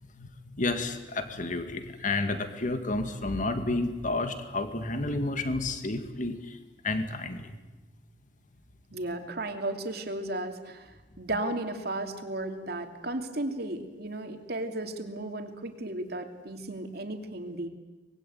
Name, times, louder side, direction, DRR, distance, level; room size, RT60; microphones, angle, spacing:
voice 1, 0.2-6.6 6.8-7.5, left 2 dB, 45° left, 8 dB, 2.1 m, -31 dB
voice 2, 8.9-17.7, right 1 dB, 60° right, 5 dB, 2.8 m, -34 dB
25.0 x 21.0 x 9.3 m, 1.2 s
head